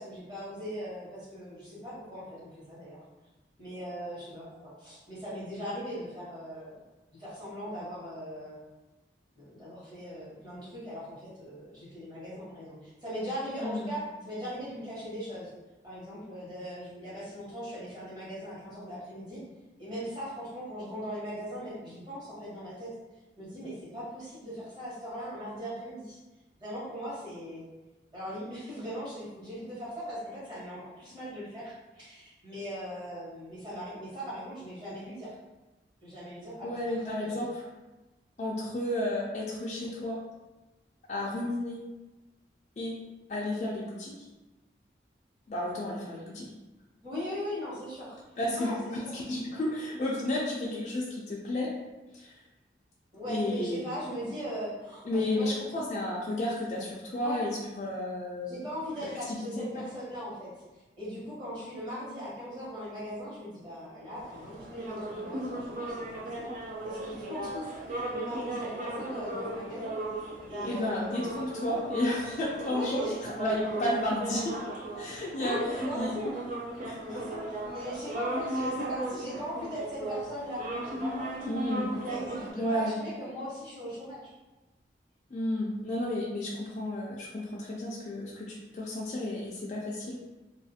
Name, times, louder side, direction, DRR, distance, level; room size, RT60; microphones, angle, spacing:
voice 1, 0.0-3.0 3.6-4.5 4.8-6.8 7.2-8.6 9.4-15.5 15.8-19.4 19.8-22.9 23.4-26.2 26.6-27.6 28.1-35.3 36.0-36.8 37.0-37.4 47.0-48.2 48.5-49.1 53.1-55.5 57.1-57.4 58.4-60.5 61.0-66.5 66.8-71.5 72.6-73.2 75.0-76.4 77.0-81.5 82.1-84.3, equal, 25° right, -10 dB, 1.1 m, -39 dB
voice 2, 13.6-13.9 36.6-37.7 38.4-40.2 41.1-41.8 42.8-43.0 43.3-44.3 45.5-46.5 48.4-51.7 52.1-52.4 53.3-53.9 55.0-58.6 59.0-59.9 70.6-74.5 75.0-76.1 76.8-77.2 81.5-82.0 82.5-83.0 85.3-90.2, left 1 dB, 40° left, -5 dB, 0.3 m, -32 dB
sound 1, 64.2-82.5, right 1 dB, 45° right, 0.4 m, -37 dB
2.4 x 2.3 x 2.7 m, 1.1 s
head